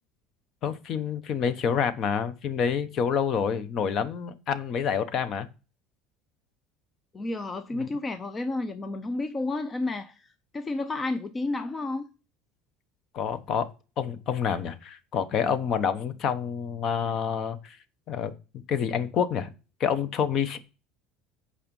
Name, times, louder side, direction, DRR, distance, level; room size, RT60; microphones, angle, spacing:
voice 1, 0.6-5.5 7.7-7.9 13.1-13.7 14.0-17.8 18.1-18.3 18.7-19.5 19.8-20.6, left 7 dB, 40° left, 1.0 m, -28 dB
voice 2, 7.1-12.1, left 2 dB, 20° left, 0.5 m, -31 dB
8.9 x 5.0 x 5.4 m
cardioid pair, 155°, 0 cm